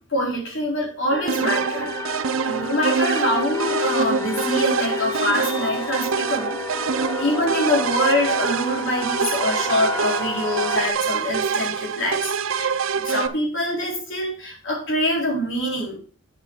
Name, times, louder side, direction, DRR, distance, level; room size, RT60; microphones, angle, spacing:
voice 1, 0.1-1.9 2.4-16.0, left 1 dB, 60° left, -2 dB, 4.4 m, -25 dB
sound 1, 1.1-10.9, left 4 dB, 10° left, 0.8 m, -31 dB
sound 2, 1.3-13.3, right 6 dB, 65° right, 0.6 m, -25 dB
9.0 x 7.3 x 4.8 m, 0.40 s
head